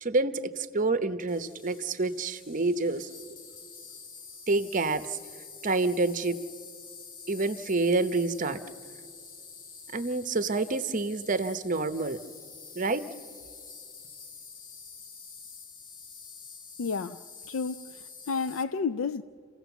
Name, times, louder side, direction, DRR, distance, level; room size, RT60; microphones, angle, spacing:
voice 1, 0.0-3.1 4.5-5.2 5.6-6.4 7.3-8.6 9.9-12.2 12.7-13.1, right 3 dB, 40° right, 0.8 m, -28 dB
Insect, 1.3-18.6, left 5 dB, 45° left, 1.2 m, -47 dB
voice 2, 16.8-17.2 17.5-19.2, left 5 dB, 90° left, 0.4 m, -31 dB
28.5 x 16.5 x 7.1 m
head